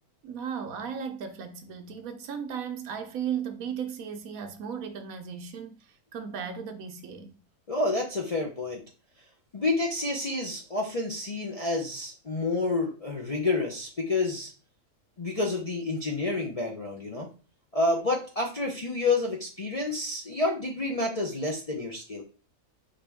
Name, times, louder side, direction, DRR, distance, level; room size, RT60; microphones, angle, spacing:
voice 1, 0.2-7.3, right 7 dB, 75° right, 1.1 m, -36 dB
voice 2, 7.7-8.8 9.5-14.5 15.2-17.3 17.7-22.2, left 2 dB, 40° left, 0.5 m, -29 dB
5.0 x 3.0 x 3.5 m
omnidirectional pair, 1.5 m